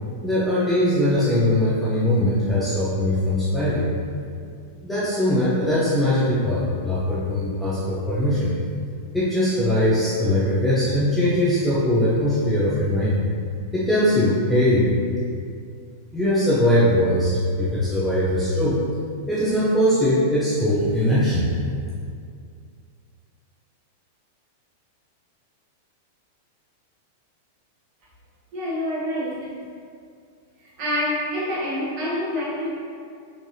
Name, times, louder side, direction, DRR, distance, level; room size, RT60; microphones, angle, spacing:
voice 1, 0.2-3.9 4.8-8.5 9.1-13.2 13.7-14.9 16.1-18.8 19.3-21.5, left 1 dB, 5° left, -10 dB, 0.4 m, -21 dB
voice 2, 28.5-29.5 30.8-32.7, left 1 dB, 30° right, -7 dB, 0.9 m, -26 dB
3.8 x 3.1 x 2.6 m, 2.3 s
supercardioid pair, 180°, 0 cm